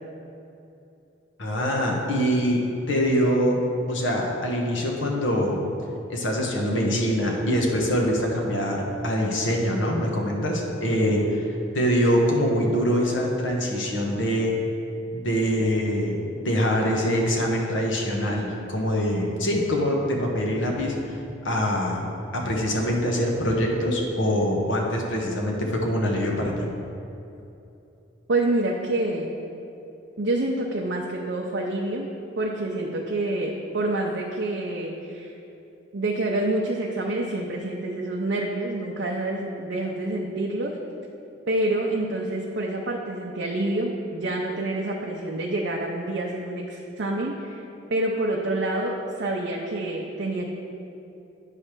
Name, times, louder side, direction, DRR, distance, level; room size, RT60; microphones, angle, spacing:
voice 1, 1.4-3.6 3.9-5.6 6.1-11.5 11.7-14.5 15.1-21.2 21.4-26.6, equal, 75° left, -1 dB, 1.1 m, -24 dB
voice 2, 28.3-29.3 30.2-32.1 32.4-35.3 35.9-40.8 41.5-47.6 47.9-50.5, right 2 dB, 60° right, -2 dB, 0.6 m, -27 dB
9.0 x 3.3 x 5.9 m, 2.8 s
head